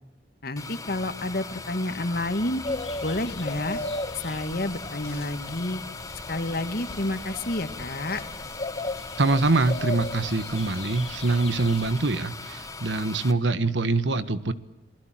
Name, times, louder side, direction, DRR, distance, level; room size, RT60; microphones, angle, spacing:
voice 1, 0.4-2.6 3.0-3.8 4.2-5.8 6.3-8.2, left 1 dB, 60° left, 9 dB, 2.1 m, -29 dB
sound 1, 0.6-13.3, left 3 dB, 20° left, 1.4 m, -40 dB
sound 2, 2.6-11.9, left 2 dB, 35° left, 1.3 m, -36 dB
voice 2, 9.2-14.5, right 3 dB, 85° right, 13 dB, 1.5 m, -24 dB
29.0 x 20.0 x 7.7 m, 0.96 s
head